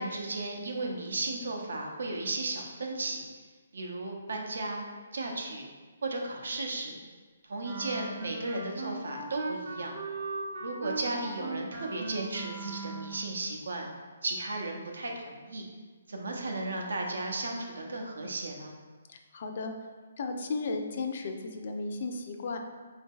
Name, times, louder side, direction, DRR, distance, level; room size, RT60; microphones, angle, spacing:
voice 1, 0.0-3.2 3.7-4.8 5.1-5.7 6.0-7.0 7.4-10.0 10.6-13.9 14.2-15.7 16.1-18.7, right 2 dB, 85° right, 1 dB, 0.7 m, -35 dB
Wind instrument woodwind instrument, 7.6-13.3, right 3 dB, 40° right, 0.7 m, -38 dB
voice 2, 19.1-19.7 20.2-22.6, left 3 dB, 45° left, 5 dB, 0.4 m, -35 dB
4.0 x 2.7 x 3.7 m, 1.4 s
hypercardioid pair, 170°, 0 cm